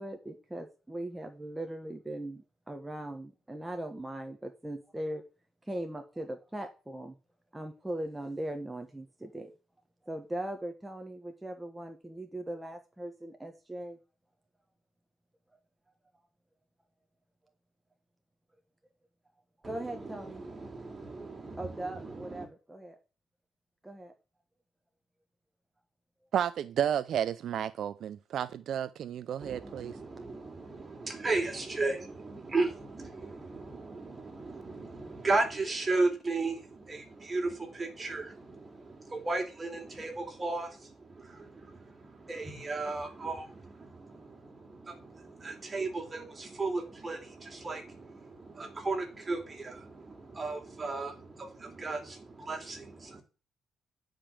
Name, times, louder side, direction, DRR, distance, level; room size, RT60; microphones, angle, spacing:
voice 1, 0.0-5.2 5.6-7.2 7.5-9.5 10.0-14.0 19.6-20.4 21.5-23.0 23.8-24.1, right 1 dB, 10° right, 1.3 m, -39 dB
voice 2, 19.6-22.5 29.4-53.2, right 3 dB, 25° right, 3.3 m, -35 dB
voice 3, 26.3-30.0, right 9 dB, 65° right, 0.5 m, -32 dB
9.9 x 5.2 x 7.5 m
cardioid pair, 90°, 0 cm